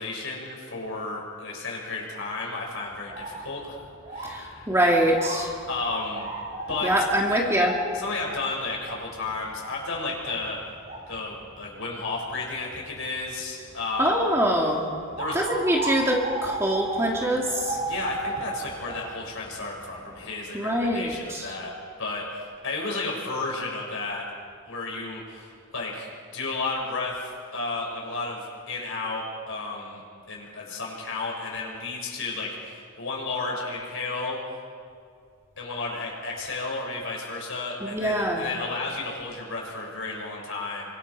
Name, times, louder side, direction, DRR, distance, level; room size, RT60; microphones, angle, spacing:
voice 1, 0.0-3.8 4.1-4.7 5.7-6.3 6.7-6.9 7.3-7.4 7.9-10.6 11.1-14.2 15.2-15.4 17.8-21.7 22.0-24.3 24.7-30.0 30.3-34.4 35.6-40.9, left 3 dB, 65° left, -2 dB, 6.3 m, -33 dB
sound 1, 2.9-20.3, right 2 dB, 30° right, 6.2 m, -37 dB
voice 2, 4.2-5.6 6.8-7.7 14.0-14.8 15.3-17.8 20.5-21.5 37.9-38.4, equal, 10° right, -1 dB, 2.5 m, -24 dB
28.5 x 24.5 x 4.9 m, 2.3 s
head